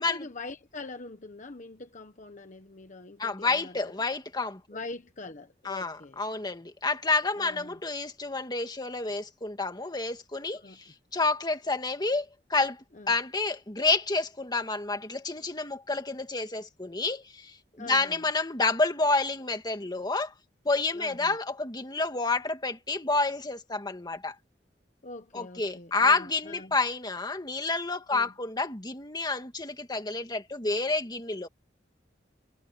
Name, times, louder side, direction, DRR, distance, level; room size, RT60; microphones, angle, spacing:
voice 1, 0.0-4.0 4.7-6.2 7.4-7.8 10.6-10.9 12.9-13.1 17.8-18.2 20.9-21.4 25.0-26.7 28.1-28.3, left 3 dB, 45° left, 1.2 m, -43 dB
voice 2, 3.2-4.6 5.6-20.3 20.7-24.3 25.3-31.5, left 3 dB, 25° left, 2.0 m, -29 dB
head